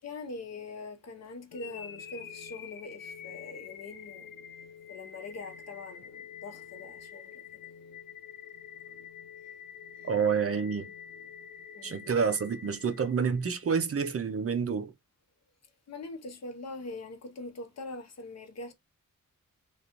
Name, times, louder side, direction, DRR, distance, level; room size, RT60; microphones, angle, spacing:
voice 1, 0.0-4.3 4.9-7.6 10.0-10.1 11.7-12.1 15.9-18.7, left 3 dB, 50° left, 0.9 m, -43 dB
sound 1, 1.5-13.6, left 7 dB, 80° left, 0.6 m, -47 dB
voice 2, 10.0-10.9 11.8-14.9, right 6 dB, 45° right, 0.6 m, -28 dB
3.3 x 2.5 x 2.9 m
wide cardioid pair, 135°, 33 cm